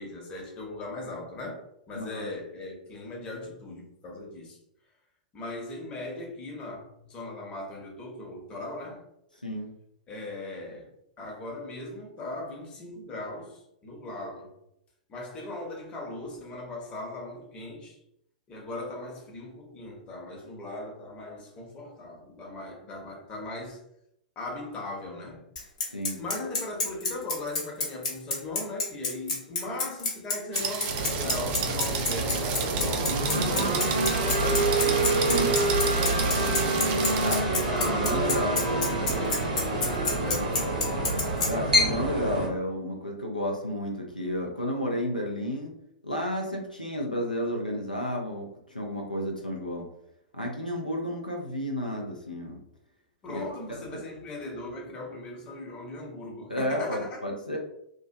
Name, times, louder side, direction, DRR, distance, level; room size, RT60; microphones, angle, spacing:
voice 1, 0.0-4.6 5.3-9.1 10.1-10.9 11.2-14.6 15.1-18.0 18.5-23.8 24.4-25.5 26.2-35.0 36.0-36.9 37.6-41.2 53.2-57.2, left 2 dB, 25° left, 0.8 m, -39 dB
voice 2, 1.9-2.3 9.4-9.7 25.9-26.2 35.3-35.6 36.3-36.4 37.2-37.4 37.8-38.6 41.5-45.7 46.0-48.5 48.7-49.9 50.3-52.6 53.3-53.4 53.7-53.8 56.5-57.6, left 1 dB, 90° left, 0.4 m, -31 dB
Bicycle, 25.6-41.5, left 3 dB, 55° left, 1.0 m, -28 dB
sound 1, 30.5-37.4, right 6 dB, 35° right, 0.3 m, -33 dB
sound 2, 30.9-42.5, right 2 dB, 60° right, 0.8 m, -27 dB
2.4 x 2.2 x 2.6 m
figure-of-eight pair, 100°, 4 cm